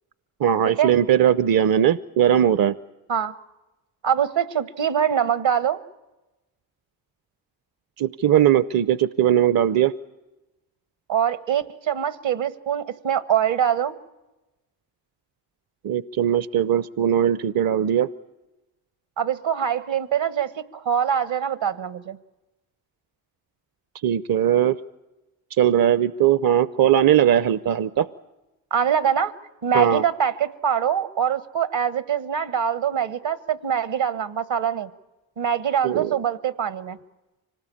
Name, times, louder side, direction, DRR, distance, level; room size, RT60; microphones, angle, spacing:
voice 1, 0.4-2.7 8.0-9.9 15.8-18.1 24.0-24.8 25.6-28.1 29.7-30.0 35.8-36.1, right 10 dB, 50° right, 17 dB, 0.7 m, -19 dB
voice 2, 4.0-5.8 11.1-13.9 19.2-22.2 28.7-29.3 29.6-34.9 35.4-37.0, right 8 dB, 70° right, 16 dB, 1.4 m, -24 dB
25.5 x 19.0 x 8.6 m, 1.0 s
supercardioid pair, 45°, 47 cm